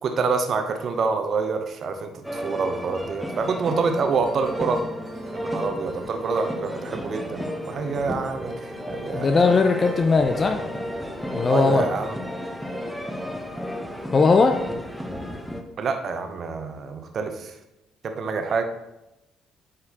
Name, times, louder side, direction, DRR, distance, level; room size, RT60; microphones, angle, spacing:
voice 1, 0.0-4.8 5.3-9.8 11.5-12.2 15.8-17.5 18.0-18.6, right 4 dB, 50° right, 7 dB, 0.8 m, -27 dB
sound 1, 2.2-15.6, equal, ahead, 0.9 m, -33 dB
Musical instrument, 3.6-10.0, right 1 dB, 15° right, 1.7 m, -41 dB
voice 2, 9.1-10.6 11.3-11.8 14.1-14.5, left 4 dB, 35° left, 6 dB, 0.5 m, -19 dB
9.2 x 5.0 x 2.9 m, 0.92 s
hypercardioid pair, 50°, 0 cm